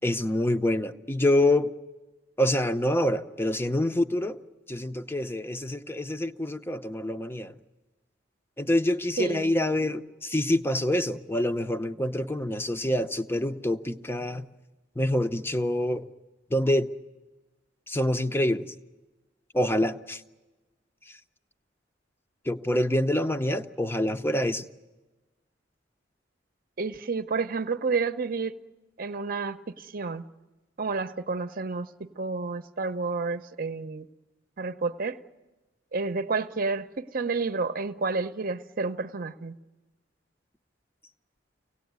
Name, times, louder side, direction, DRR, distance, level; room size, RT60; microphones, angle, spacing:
voice 1, 0.0-1.7 2.4-4.4 4.7-7.5 8.6-14.4 15.0-16.1 16.5-16.9 17.9-18.6 19.5-20.2 22.5-24.6, left 1 dB, 15° left, 0.7 m, -26 dB
voice 2, 9.2-9.5 26.8-28.5 29.0-30.2 30.8-34.1 34.6-35.2 35.9-39.6, right 4 dB, 50° right, 0.8 m, -30 dB
25.0 x 18.0 x 9.5 m
head